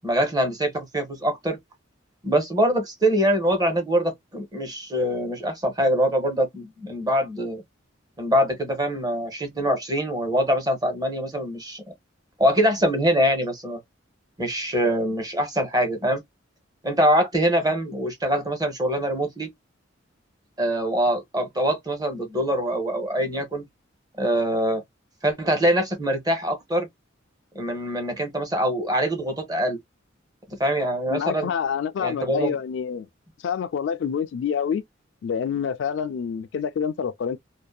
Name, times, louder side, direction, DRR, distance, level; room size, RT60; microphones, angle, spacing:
voice 1, 0.0-1.6 2.2-7.6 8.2-11.8 12.4-13.8 14.4-16.2 16.8-19.5 20.6-23.6 24.2-24.8 25.2-26.9 27.5-29.8 30.6-31.5 32.0-32.5, equal, 20° right, 0.8 m, -24 dB
voice 2, 31.1-33.1 33.4-34.8 35.2-37.4, left 7 dB, 65° left, 0.3 m, -27 dB
2.6 x 2.2 x 2.2 m
head